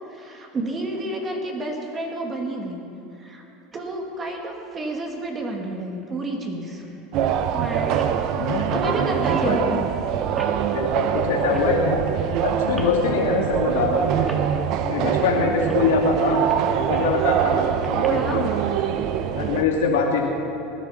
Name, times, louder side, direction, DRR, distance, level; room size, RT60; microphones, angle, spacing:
voice 1, 0.1-2.8 3.2-3.4 3.7-6.8 8.7-9.9 18.0-18.4, right 2 dB, 30° right, 1 dB, 2.2 m, -30 dB
sound 1, 3.7-3.8 5.6-5.7 6.0-6.1 6.7-6.9 7.2-7.3 7.4-9.6 10.4-10.6 11.5-11.7 12.7-13.0 13.8-13.9 14.2-14.4 15.7-15.9 16.3-17.2 17.8-18.1, right 1 dB, 10° right, 2.1 m, -35 dB
sound 2, 7.1-19.6, right 9 dB, 55° right, 0.9 m, -23 dB
voice 2, 8.3-9.0 9.4-9.8 10.7-12.1 12.4-14.1 14.8-16.4 16.9-18.5 19.4-20.3, left 5 dB, 80° left, 0 dB, 2.3 m, -24 dB
19.5 x 10.5 x 5.8 m, 3.0 s
supercardioid pair, 110°, 0 cm